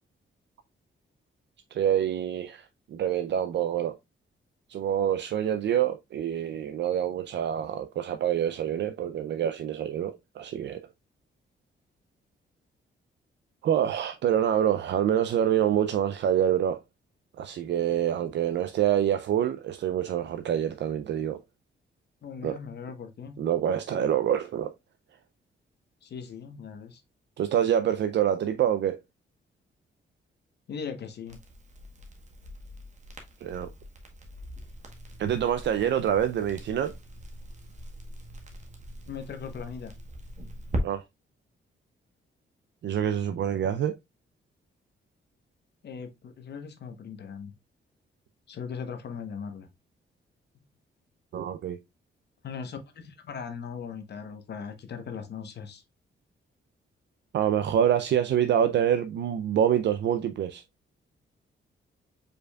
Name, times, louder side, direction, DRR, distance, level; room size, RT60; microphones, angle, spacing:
voice 1, 1.7-4.0 4.7-10.8 13.6-16.8 17.4-21.4 22.4-22.6 23.4-24.7 27.4-29.0 33.4-33.7 35.2-36.9 40.8-41.0 42.8-44.0 51.3-51.8 57.3-60.6, right 10 dB, 60° right, 0.4 m, -26 dB
voice 2, 22.2-23.4 26.0-27.0 30.7-31.4 39.1-39.9 45.8-47.5 48.5-49.7 52.4-55.8, left 6 dB, 55° left, 0.9 m, -39 dB
Crackle, 31.3-40.8, right 1 dB, 35° right, 1.1 m, -40 dB
5.1 x 4.5 x 2.2 m
wide cardioid pair, 165°, 21 cm